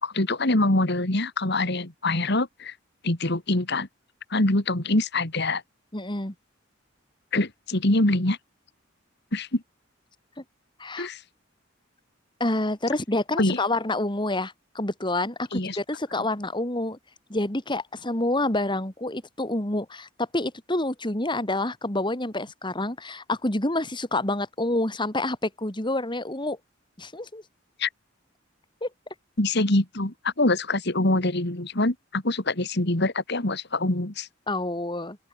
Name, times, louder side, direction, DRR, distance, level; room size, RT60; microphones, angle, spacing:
voice 1, 0.0-2.7 3.0-3.9 4.3-5.6 7.3-8.4 9.3-9.6 11.0-11.2 13.4-13.6 15.5-15.8 27.8-27.9 29.4-34.3, left 2 dB, 55° left, 2.8 m, -24 dB
voice 2, 5.9-6.3 10.8-11.1 12.4-17.0 17.3-26.6 27.0-27.4 28.8-28.9 34.5-35.2, left 2 dB, 25° left, 3.0 m, -28 dB
open air
head